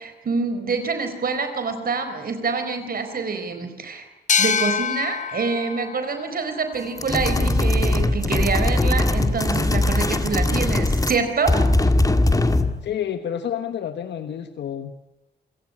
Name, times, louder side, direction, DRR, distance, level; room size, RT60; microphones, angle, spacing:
voice 1, 0.0-4.1 4.4-11.5, right 4 dB, 55° right, 8 dB, 4.2 m, -26 dB
sound 1, 4.3-7.7, left 7 dB, 45° left, 0.9 m, -27 dB
Trying to open a locked door, 7.0-11.2 11.5-12.8, left 2 dB, 20° left, 2.0 m, -20 dB
voice 2, 12.8-14.9, left 9 dB, 85° left, 9 dB, 1.3 m, -29 dB
27.5 x 17.5 x 9.9 m, 1.0 s
cardioid pair, 85°, 18 cm